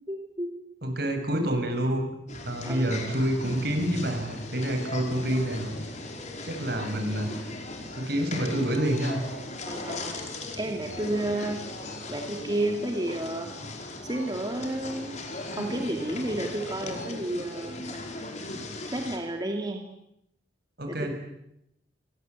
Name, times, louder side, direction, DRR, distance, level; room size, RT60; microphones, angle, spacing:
voice 1, 0.1-0.6 2.6-2.9 9.7-10.1 10.6-11.6 12.1-13.6 14.0-15.2 15.5-18.2 18.9-19.8 20.9-21.1, right 1 dB, 25° right, 3 dB, 2.5 m, -31 dB
voice 2, 0.8-2.1 2.4-5.7 6.4-7.5 7.9-9.2 20.8-21.1, right 1 dB, 60° right, 5 dB, 7.0 m, -28 dB
sound 1, 2.3-19.2, left 2 dB, 40° left, 4.7 m, -38 dB
28.5 x 24.0 x 8.3 m, 0.81 s
head